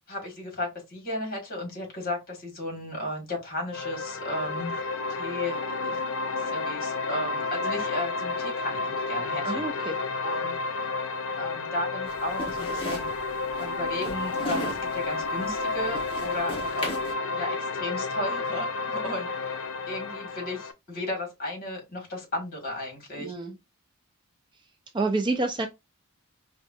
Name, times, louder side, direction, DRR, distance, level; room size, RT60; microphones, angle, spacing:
voice 1, 0.1-6.0 6.4-9.8 10.2-10.6 11.4-13.1 13.6-16.9 17.3-23.3, left 1 dB, 40° left, 1.8 m, -34 dB
sound 1, 3.7-20.7, left 3 dB, 75° left, 0.5 m, -31 dB
voice 2, 9.4-9.9 23.2-23.5 24.9-25.7, right 3 dB, 20° right, 0.4 m, -28 dB
sound 2, 12.1-17.1, left 1 dB, 25° left, 0.9 m, -38 dB
4.6 x 2.3 x 2.5 m
head